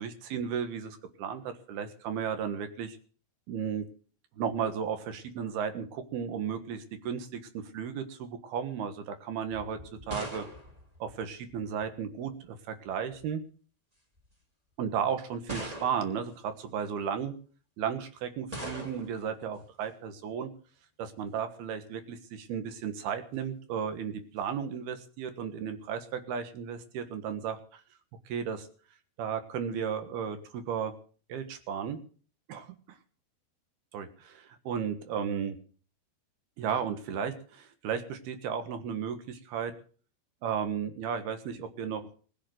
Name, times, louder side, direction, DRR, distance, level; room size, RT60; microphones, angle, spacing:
voice 1, 0.0-3.0 3.5-3.9 4.4-9.8 10.1-10.5 11.0-13.4 14.8-17.3 17.8-20.5 21.0-27.8 28.3-28.7 29.2-30.9 31.3-32.0 32.5-32.8 33.9-35.6 36.6-39.7 40.4-42.1, right 7 dB, 70° right, 9 dB, 3.3 m, -34 dB
sound 1, 9.5-11.8 12.9-13.3 14.2-14.3 15.5-16.3 18.5-19.2, right 1 dB, 10° right, 2.4 m, -41 dB
20.5 x 7.9 x 7.8 m, 0.43 s
omnidirectional pair, 4.8 m